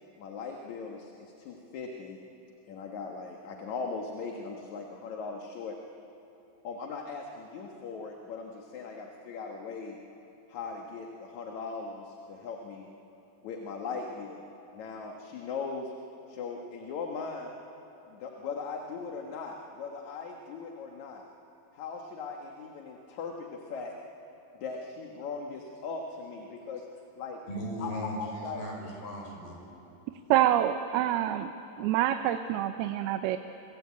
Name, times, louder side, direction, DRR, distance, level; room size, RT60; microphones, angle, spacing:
voice 1, 0.2-2.2 2.7-5.8 6.6-10.0 10.5-12.9 13.4-14.4 14.7-15.9 16.3-17.5 18.1-21.2 21.7-23.9 24.6-26.9 27.2-27.4 27.8-27.9 28.2-28.7, left 4 dB, 60° left, 1 dB, 2.6 m, -39 dB
voice 2, 27.5-29.6, equal, 80° left, 0 dB, 7.1 m, -37 dB
voice 3, 30.3-31.5 31.8-33.4, right 12 dB, 90° right, 8 dB, 2.8 m, -26 dB
28.5 x 24.0 x 8.6 m, 2.9 s
omnidirectional pair, 4.4 m